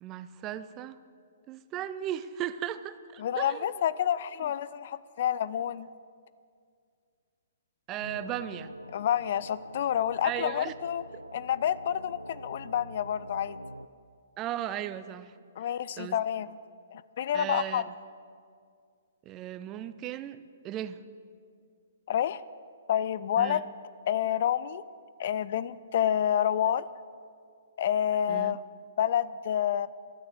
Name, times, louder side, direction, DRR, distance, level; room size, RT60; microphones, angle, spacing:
voice 1, 0.0-1.0 1.5-3.8 4.4-4.5 7.9-8.7 10.2-10.7 14.4-15.3 16.0-16.2 17.3-17.9 19.3-21.0 23.4-23.6 28.3-28.6, right 11 dB, 25° right, 14 dB, 0.5 m, -36 dB
voice 2, 3.2-5.9 8.9-11.0 11.3-13.6 15.6-16.6 16.9-17.9 22.1-22.4 22.9-23.6 24.1-24.8 25.2-26.9 27.8-28.6 29.0-29.9, left 10 dB, 45° left, 17 dB, 0.4 m, -28 dB
sound 1, 8.0-13.9, equal, 90° right, 0.5 m, -45 dB
12.5 x 9.5 x 8.1 m, 2.2 s
figure-of-eight pair, 120°, 0 cm